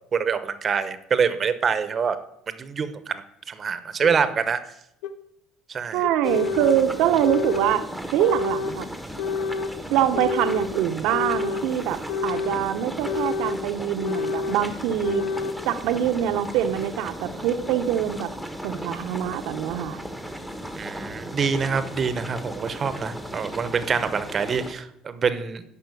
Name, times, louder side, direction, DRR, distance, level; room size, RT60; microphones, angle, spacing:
voice 1, 0.1-2.2 2.5-4.6 5.7-6.0 20.8-25.6, right 6 dB, 35° right, 12 dB, 1.0 m, -25 dB
sound 1, 4.0-4.1 5.0-5.1 6.0-6.8 7.2-7.8 8.2-8.8 9.2-9.7 10.1-10.7 11.1-11.7 12.1-12.6 13.0-13.6 14.0-14.6 15.0-15.6, left 5 dB, 85° left, 0.8 m, -28 dB
voice 2, 5.9-8.9 9.9-15.2 15.6-18.3 18.6-20.0, right 10 dB, 75° right, 8 dB, 0.9 m, -24 dB
sound 2, 6.2-24.7, equal, 5° left, 1.3 m, -36 dB
10.5 x 5.5 x 8.4 m, 0.78 s
supercardioid pair, 105°, 0 cm